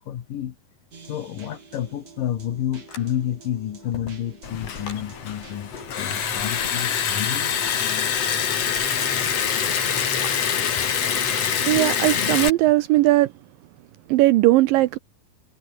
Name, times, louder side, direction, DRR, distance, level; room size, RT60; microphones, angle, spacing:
voice 1, 0.1-0.5 1.0-5.7 6.0-7.5 10.7-10.9, left 11 dB, 70° left, 3.3 m, -30 dB
sound 1, 0.9-12.5, right 5 dB, 45° right, 5.2 m, -45 dB
sound 2, 2.9-3.5 3.8-5.1 7.7-8.0 10.2-10.5, left 4 dB, 90° left, 9.0 m, -40 dB
Liquid, 4.4-12.5, left 8 dB, 50° left, 2.9 m, -25 dB
voice 2, 11.7-13.3 14.1-15.0, right 17 dB, 80° right, 2.3 m, -18 dB
omnidirectional pair, 4.3 m